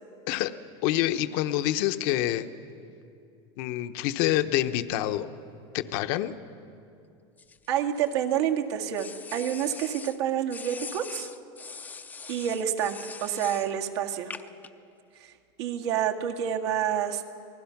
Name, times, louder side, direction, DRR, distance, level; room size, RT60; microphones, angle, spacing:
voice 1, 0.8-2.5 3.6-5.3 5.7-6.3, left 14 dB, 60° left, 9 dB, 0.9 m, -27 dB
sound 1, 7.4-8.4 9.0-10.2 10.5-13.7 14.3-14.7, left 5 dB, 10° left, 0.5 m, -42 dB
voice 2, 7.7-11.3 12.3-14.3 15.2-17.2, right 9 dB, 80° right, 2 dB, 2.0 m, -28 dB
28.5 x 19.5 x 5.9 m, 2.5 s
supercardioid pair, 155°, 14 cm